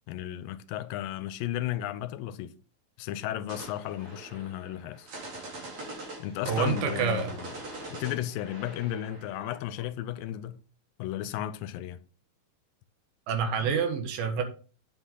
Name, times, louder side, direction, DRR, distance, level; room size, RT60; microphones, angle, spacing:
voice 1, 0.1-2.5 3.0-5.1 6.2-7.5 7.9-10.6 11.0-12.0, left 12 dB, 85° left, 2.3 m, -34 dB
sound 1, 3.5-9.8, right 2 dB, 50° right, 4.6 m, -42 dB
voice 2, 6.5-7.3 13.3-14.4, right 6 dB, 80° right, 3.2 m, -27 dB
9.1 x 7.8 x 3.8 m
omnidirectional pair, 4.2 m